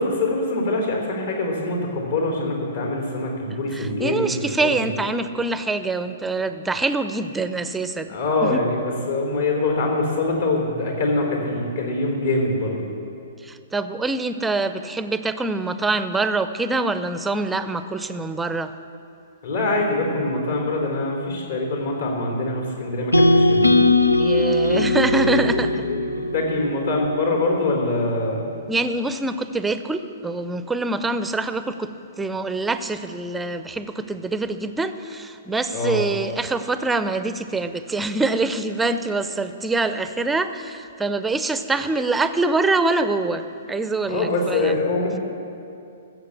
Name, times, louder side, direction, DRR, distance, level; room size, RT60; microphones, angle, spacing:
voice 1, 0.0-4.9 8.1-12.9 19.4-23.8 24.7-24.9 25.2-26.0 26.3-28.4 35.7-36.0 44.0-45.2, left 2 dB, 60° left, 1 dB, 3.7 m, -24 dB
voice 2, 3.7-8.1 8.4-8.6 13.4-18.7 24.2-25.8 28.7-31.9 32.2-44.7, right 3 dB, 10° right, 11 dB, 0.6 m, -25 dB
sound 1, 23.1-27.3, left 2 dB, 90° left, 0.6 m, -19 dB
14.5 x 7.6 x 8.0 m, 2.5 s
figure-of-eight pair, 115°, 0 cm